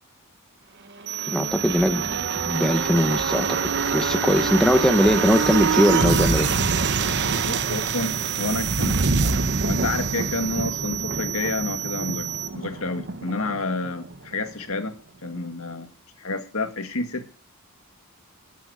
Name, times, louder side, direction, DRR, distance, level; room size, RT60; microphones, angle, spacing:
sound 1, 1.0-14.5 14.8-14.9, right 4 dB, 50° right, 1.0 m, -26 dB
sound 2, 1.1-12.5, right 12 dB, 85° right, 1.4 m, -32 dB
voice 1, 1.3-6.5, equal, 5° left, 7 dB, 0.7 m, -21 dB
voice 2, 7.4-12.3 12.5-14.9 15.2-15.9 16.2-17.3, left 3 dB, 70° left, 6 dB, 1.9 m, -29 dB
11.5 x 8.3 x 6.6 m, 0.38 s
head